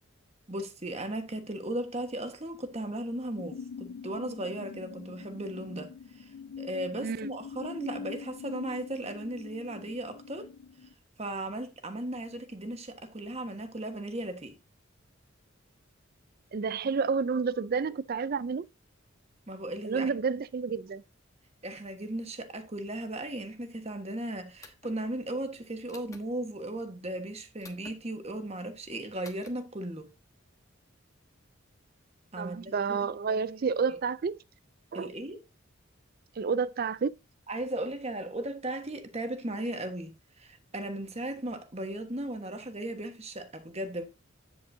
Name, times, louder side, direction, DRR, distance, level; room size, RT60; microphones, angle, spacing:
voice 1, 0.5-10.5 11.2-14.6 19.5-20.1 21.6-30.1 32.3-33.5 34.9-35.4 37.5-44.0, right 1 dB, 30° right, 1.3 m, -36 dB
sound 1, 3.4-10.9, left 6 dB, 90° left, 0.4 m, -44 dB
voice 2, 16.5-18.6 19.8-21.0 32.4-34.4 34.9-35.1 36.4-37.1, right 5 dB, 45° right, 0.4 m, -30 dB
sound 2, 24.6-25.0 25.9-26.3 27.6-28.0 29.2-29.5, left 3 dB, 15° left, 1.2 m, -50 dB
9.3 x 8.2 x 2.7 m
head